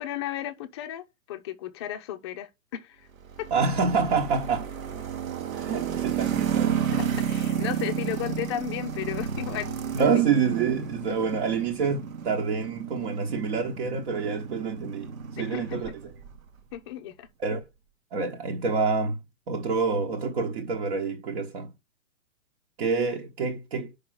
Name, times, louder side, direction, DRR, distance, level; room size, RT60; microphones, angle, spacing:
voice 1, 0.0-3.1 3.4-3.5 7.0-10.2 11.1-11.2 15.4-15.8 16.7-17.3, left 12 dB, 20° left, 0.5 m, -35 dB
sound 1, 3.2-16.4, right 8 dB, 70° right, 1.3 m, -32 dB
voice 2, 3.5-4.7 5.5-6.9 9.9-15.1 15.4-15.9 17.4-17.6 18.1-19.2 19.5-21.7 22.8-23.9, right 5 dB, 45° right, 1.2 m, -27 dB
5.2 x 5.2 x 6.1 m
hypercardioid pair, 145°, 41 cm